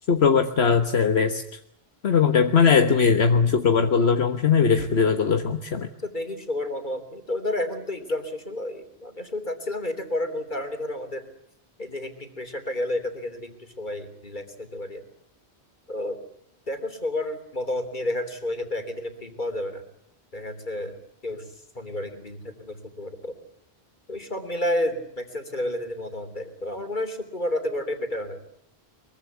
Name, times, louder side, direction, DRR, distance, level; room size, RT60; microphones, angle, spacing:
voice 1, 0.1-1.6 2.0-5.9, left 6 dB, 75° left, 7 dB, 1.6 m, -20 dB
voice 2, 6.0-11.3 11.8-15.0 15.9-16.2 16.7-19.8 20.3-21.0 21.2-21.5 21.8-23.3 24.1-28.4, left 1 dB, 45° left, 7 dB, 3.6 m, -31 dB
23.5 x 23.0 x 8.2 m, 0.69 s
omnidirectional pair, 1.1 m